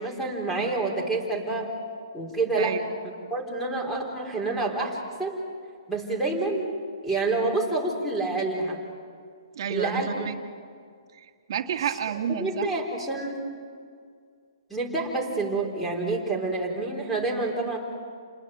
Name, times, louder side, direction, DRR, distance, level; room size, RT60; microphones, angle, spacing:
voice 1, 0.0-1.7 2.1-2.7 3.3-5.4 5.9-6.7 7.0-8.8 9.7-10.3 12.4-13.5 14.7-17.8, right 3 dB, 5° left, 0 dB, 4.2 m, -28 dB
voice 2, 9.6-10.4 11.2-12.7, right 8 dB, 55° right, 5 dB, 1.7 m, -30 dB
29.0 x 20.5 x 7.9 m, 2.1 s
hypercardioid pair, 155°, 3 cm